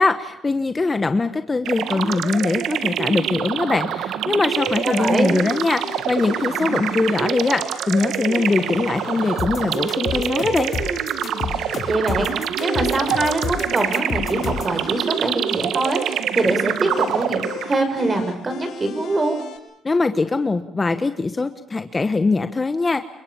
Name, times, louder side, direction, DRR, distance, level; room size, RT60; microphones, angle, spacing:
voice 1, 0.0-10.7 19.8-23.1, left 3 dB, 25° left, 9 dB, 1.3 m, -22 dB
sound 1, 1.6-18.0, right 9 dB, 75° right, 1.6 m, -26 dB
sound 2, 4.6-19.6, left 6 dB, 80° left, 7.2 m, -37 dB
voice 2, 4.8-5.3 11.9-19.4, right 2 dB, 25° right, 7 dB, 6.1 m, -23 dB
sound 3, 9.4-14.8, left 7 dB, 50° left, 3.8 m, -29 dB
29.5 x 24.0 x 7.2 m, 0.75 s
cardioid pair, 120°, 0 cm